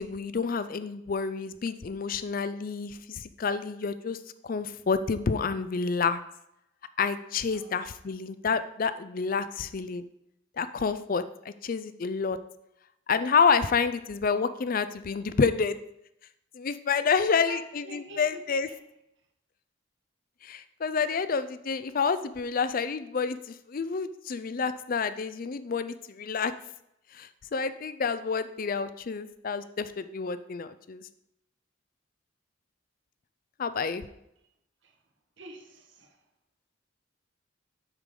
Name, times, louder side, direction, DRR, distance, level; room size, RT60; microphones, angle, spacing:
voice 1, 0.0-4.2 4.4-6.2 7.0-10.0 10.6-12.4 13.1-15.8 16.5-18.7 20.4-26.5 27.1-31.0 33.6-34.1, left 5 dB, 45° left, 13 dB, 0.4 m, -29 dB
voice 2, 17.0-18.8 34.4-34.5 34.8-35.0 35.4-36.2, right 2 dB, 65° right, 1 dB, 1.4 m, -47 dB
8.0 x 6.7 x 3.8 m, 0.81 s
head